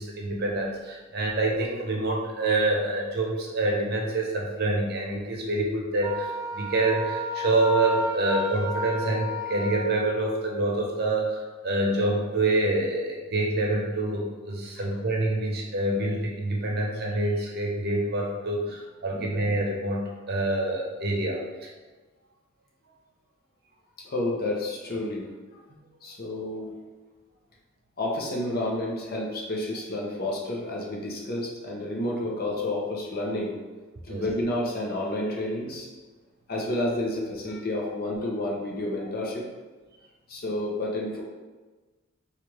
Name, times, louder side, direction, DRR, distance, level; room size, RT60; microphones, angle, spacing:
voice 1, 0.0-21.7 25.7-25.8 34.1-34.3, right 2 dB, 50° right, -1 dB, 0.7 m, -27 dB
Wind instrument woodwind instrument, 6.0-10.2, equal, 15° right, 0.4 m, -32 dB
voice 2, 24.0-25.3 26.0-26.8 28.0-33.6 34.0-35.9 36.5-39.5 40.3-41.2, left 1 dB, 50° left, -2 dB, 0.8 m, -30 dB
3.2 x 2.4 x 4.4 m, 1.3 s
head